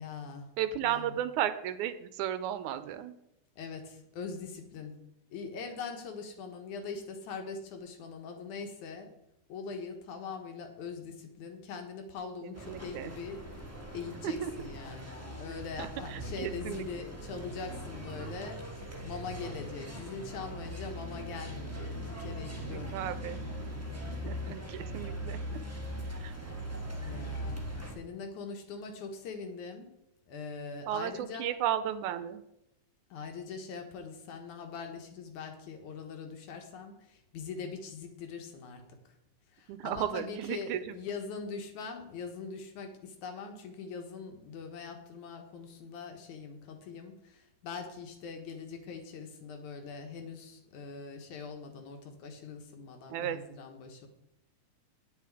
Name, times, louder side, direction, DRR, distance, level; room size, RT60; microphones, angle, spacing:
voice 1, 0.0-0.5 0.8-1.1 3.6-5.0 5.3-9.1 9.5-13.4 13.9-23.5 24.2-24.6 27.0-27.7 28.0-29.9 30.3-31.6 33.1-38.8 39.5-54.1, left 5 dB, 80° left, 5 dB, 2.8 m, -42 dB
voice 2, 0.6-3.2 12.4-13.1 14.2-14.5 15.8-16.9 22.7-23.4 24.3-24.6 24.9-25.6 26.2-26.3 30.9-32.4 39.7-41.0 53.1-53.4, right 11 dB, 90° right, 12 dB, 2.1 m, -34 dB
sound 1, 12.5-27.9, right 1 dB, 20° right, 0.4 m, -40 dB
9.3 x 8.8 x 4.9 m, 0.84 s
omnidirectional pair, 3.5 m